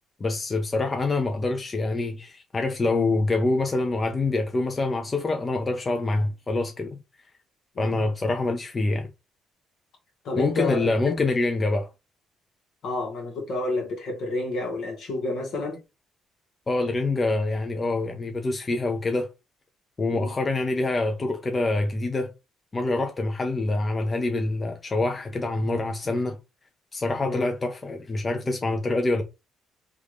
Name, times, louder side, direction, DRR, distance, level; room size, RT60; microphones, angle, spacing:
voice 1, 0.2-7.0 7.8-9.1 10.3-11.9 16.7-19.3 20.0-22.3 22.7-26.4 26.9-29.2, left 2 dB, 30° left, 0.6 m, -26 dB
voice 2, 10.2-11.1 12.8-15.8 20.1-20.4 27.2-27.5, left 2 dB, 70° left, 1.4 m, -30 dB
3.5 x 2.5 x 3.1 m
supercardioid pair, 75°, 0 cm